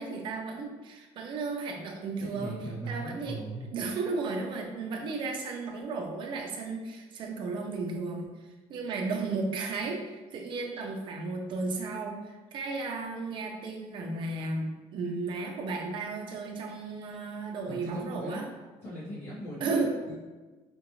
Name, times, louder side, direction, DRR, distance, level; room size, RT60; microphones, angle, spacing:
voice 1, 0.0-2.5 2.9-8.3 8.7-18.5 19.6-19.9, right 3 dB, 45° right, 1 dB, 0.6 m, -34 dB
voice 2, 2.2-3.6 17.7-18.4 18.8-19.8 20.1-20.2, right 1 dB, 55° left, -11 dB, 1.2 m, -39 dB
5.1 x 2.4 x 3.0 m, 1.3 s
cardioid pair, 170°, 11 cm